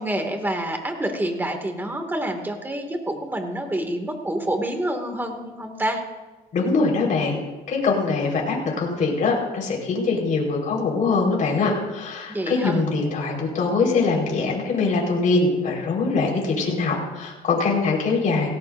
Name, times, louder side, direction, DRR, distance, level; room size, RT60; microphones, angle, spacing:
voice 1, 0.0-6.0 12.3-12.8, right 1 dB, 10° right, 4 dB, 2.2 m, -27 dB
voice 2, 6.5-7.4 7.7-18.5, left 4 dB, 50° left, -1 dB, 4.7 m, -23 dB
17.5 x 17.0 x 2.7 m, 1.1 s
cardioid pair, 110°, 17 cm